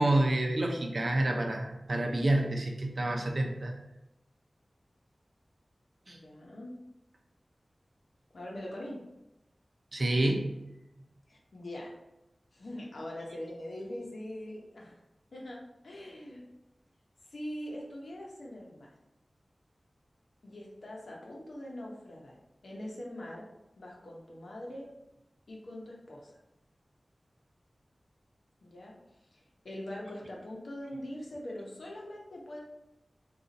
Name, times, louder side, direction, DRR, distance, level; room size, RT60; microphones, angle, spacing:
voice 1, 0.0-3.7 6.1-6.2 9.9-10.5, right 1 dB, 60° right, 2 dB, 0.5 m, -28 dB
voice 2, 6.1-6.7 8.3-9.0 11.3-11.9 12.5-14.9 15.3-16.4 17.3-18.9 20.4-22.3 22.6-23.4 23.8-24.9 25.5-26.4 28.6-28.9 29.3-32.6, left 1 dB, 90° left, -2 dB, 0.7 m, -42 dB
2.5 x 2.3 x 3.9 m, 0.91 s
wide cardioid pair, 65°, 0 cm